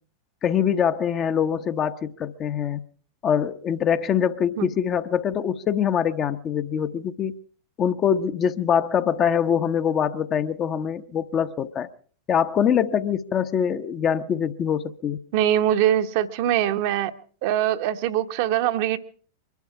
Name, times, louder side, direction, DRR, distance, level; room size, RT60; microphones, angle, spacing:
voice 1, 0.4-2.8 3.2-7.4 7.8-11.9 12.3-15.2, left 8 dB, 30° left, 0.9 m, -24 dB
voice 2, 15.3-17.1 17.4-19.0, right 11 dB, 50° right, 1.0 m, -22 dB
24.0 x 12.0 x 4.8 m
figure-of-eight pair, 90°, 0 cm